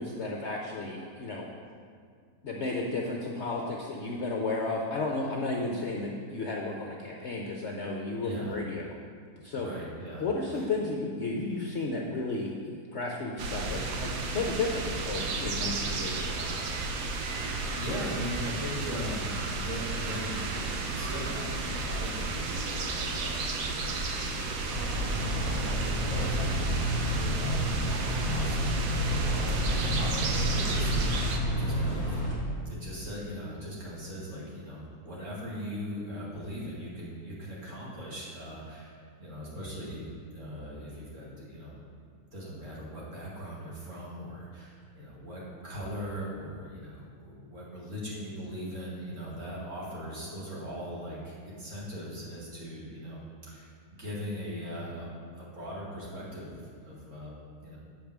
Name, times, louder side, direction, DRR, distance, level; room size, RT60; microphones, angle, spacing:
voice 1, 0.0-1.5 2.4-9.0 9.4-9.7 10.2-16.5, left 3 dB, 60° left, 0 dB, 0.8 m, -33 dB
voice 2, 8.2-8.6 9.5-10.3 10.5-10.6 17.8-19.3 19.6-32.2 32.7-41.8 42.3-53.2 53.5-53.7 54.0-57.8, equal, 50° right, -7 dB, 2.4 m, -40 dB
sound 1, 13.4-31.4, right 3 dB, 80° right, 1.4 m, -33 dB
sound 2, 24.7-32.3, equal, 30° right, 2.1 m, -29 dB
7.8 x 5.2 x 6.0 m, 2.1 s
omnidirectional pair, 1.7 m